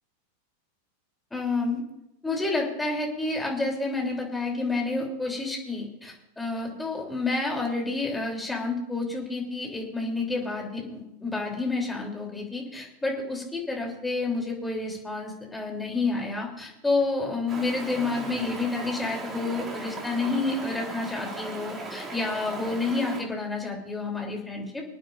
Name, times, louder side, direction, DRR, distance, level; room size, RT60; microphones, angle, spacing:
voice 1, 1.3-1.8 2.2-24.8, left 3 dB, 5° left, -1 dB, 3.3 m, -29 dB
Stream, 17.5-23.2, right 3 dB, 20° right, 2.7 m, -37 dB
26.0 x 9.1 x 2.6 m, 0.86 s
figure-of-eight pair, 90°, 0 cm